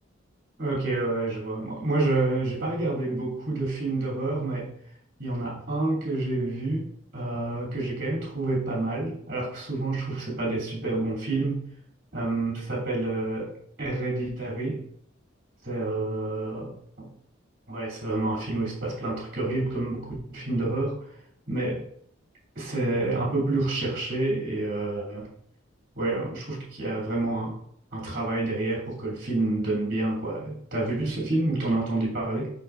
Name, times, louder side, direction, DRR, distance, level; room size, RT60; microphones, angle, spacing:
voice 1, 0.6-4.7 5.2-6.9 7.1-11.7 12.1-13.5 13.8-14.8 15.6-16.7 17.0-17.1 17.7-21.0 21.5-21.8 22.5-25.3 26.0-27.6 27.9-32.5, right 2 dB, 50° right, -4 dB, 2.6 m, -28 dB
6.7 x 5.7 x 2.5 m, 0.65 s
head